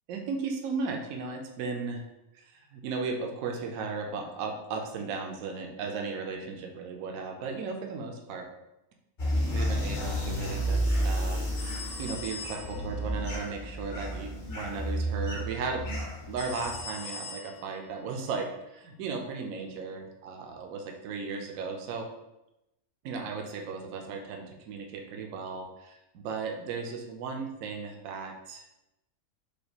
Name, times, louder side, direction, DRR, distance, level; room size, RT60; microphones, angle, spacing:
voice 1, 0.1-2.1 2.3-8.5 9.5-16.0 16.3-22.1 23.0-28.6, right 4 dB, 75° right, 2 dB, 1.0 m, -36 dB
sound 1, 9.2-16.8, equal, 45° left, 0.8 m, -31 dB
sound 2, 11.6-13.0 16.4-17.8, left 3 dB, 70° left, 1.3 m, -41 dB
5.0 x 2.3 x 2.9 m, 0.91 s
omnidirectional pair, 1.5 m